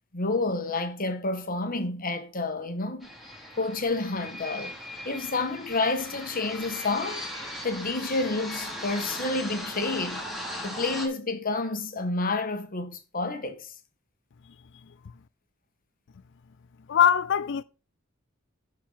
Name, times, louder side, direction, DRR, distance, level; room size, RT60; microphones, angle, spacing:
voice 1, 0.1-3.1 3.6-4.7 5.0-7.3 7.6-10.2 10.6-13.7, left 3 dB, 40° left, 1.5 m, -29 dB
sound 1, 3.0-11.1, equal, ahead, 2.6 m, -38 dB
voice 2, 16.9-17.6, left 8 dB, 60° left, 0.4 m, -21 dB
11.5 x 4.6 x 5.7 m
head